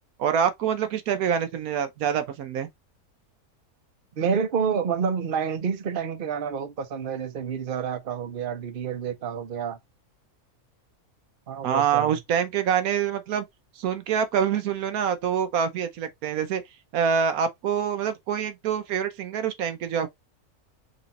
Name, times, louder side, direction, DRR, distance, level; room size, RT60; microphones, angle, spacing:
voice 1, 0.2-2.7 11.6-13.4 13.8-16.6 16.9-20.1, right 8 dB, 75° right, 1.1 m, -25 dB
voice 2, 4.2-9.8 11.5-12.1, right 7 dB, 45° right, 0.9 m, -28 dB
4.0 x 3.0 x 4.0 m
omnidirectional pair, 1.6 m